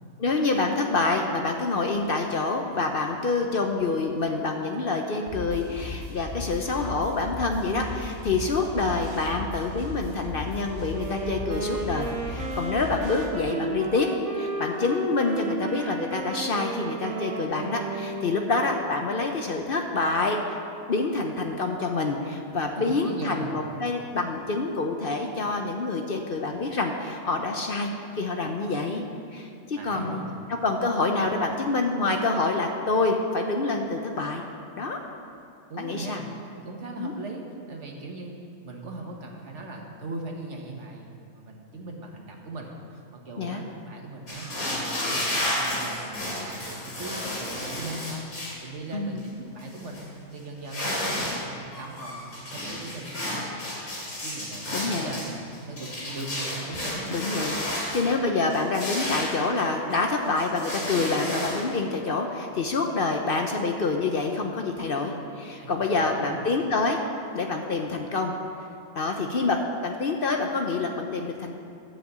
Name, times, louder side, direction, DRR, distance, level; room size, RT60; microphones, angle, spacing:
voice 1, 0.2-14.1 14.3-20.6 20.9-27.9 28.1-29.0 29.3-30.2 30.5-34.4 34.8-35.0 35.8-36.2 37.0-37.1 43.4-43.6 48.9-49.3 54.7-55.1 57.1-67.0 67.3-68.3 68.9-71.5, left 3 dB, 50° left, 3 dB, 0.7 m, -27 dB
sound 1, 5.3-13.3, left 2 dB, 40° right, 1.7 m, -37 dB
Wind instrument woodwind instrument, 10.9-18.9, right 3 dB, 75° right, 1.5 m, -34 dB
voice 2, 22.8-23.6 29.7-30.4 35.7-36.3 36.6-38.4 38.6-48.3 48.6-50.1 50.3-53.8 54.2-57.2 65.6-66.4, right 2 dB, 55° right, 1 dB, 1.5 m, -39 dB
sound 2, 44.3-48.6 49.2-49.3 49.6-50.0 50.6-51.4 51.7-58.1 58.5-60.0 60.4-61.6, left 1 dB, 80° left, 3.0 m, -32 dB
12.0 x 5.1 x 7.8 m, 2.5 s
omnidirectional pair, 1.5 m